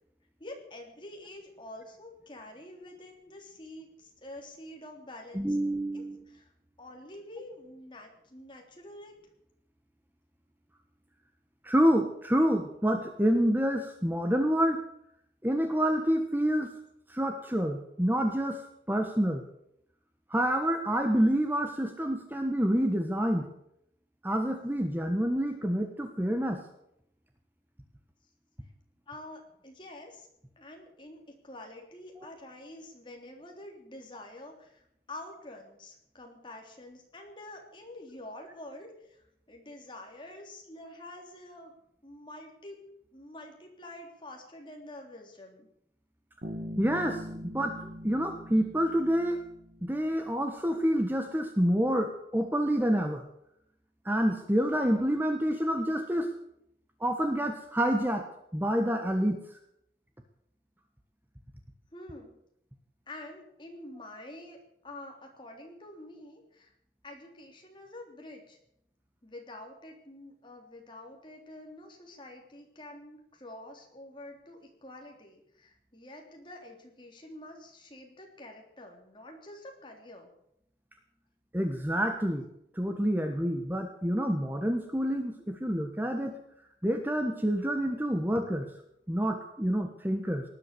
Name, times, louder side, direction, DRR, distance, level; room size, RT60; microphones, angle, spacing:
voice 1, 0.4-5.6 5.9-6.5 6.8-9.1 29.1-30.3 30.6-34.8 35.1-41.7 42.0-42.8 43.1-45.7 61.9-62.3 63.1-64.6 64.8-66.7 67.0-68.6 69.2-80.3, left 1 dB, 25° left, 1 dB, 3.4 m, -47 dB
voice 2, 5.3-6.3 11.6-14.8 15.4-16.7 17.1-18.6 18.9-19.4 20.3-23.5 24.2-26.6 32.2-32.3 46.8-47.7 48.0-49.4 49.8-53.2 54.0-56.3 57.0-58.2 58.5-59.4 81.5-82.5 82.8-86.3 86.8-88.7 89.1-90.4, equal, 10° right, 5 dB, 1.2 m, -28 dB
Bass guitar, 46.4-50.2, equal, 45° right, 2.4 m, -42 dB
19.0 x 11.0 x 6.9 m, 0.76 s
head